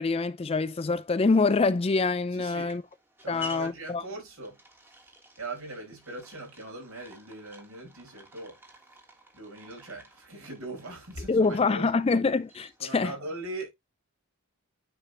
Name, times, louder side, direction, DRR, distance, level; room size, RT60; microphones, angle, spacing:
voice 1, 0.0-2.8 3.3-4.0 11.3-13.1, left 4 dB, 25° left, 0.3 m, -25 dB
sound 1, 1.8-13.1, left 1 dB, 10° right, 1.3 m, -50 dB
voice 2, 2.3-2.8 3.2-4.6 5.4-8.6 9.3-11.9 12.8-13.7, right 2 dB, 75° right, 4.9 m, -40 dB
9.6 x 4.4 x 2.9 m
head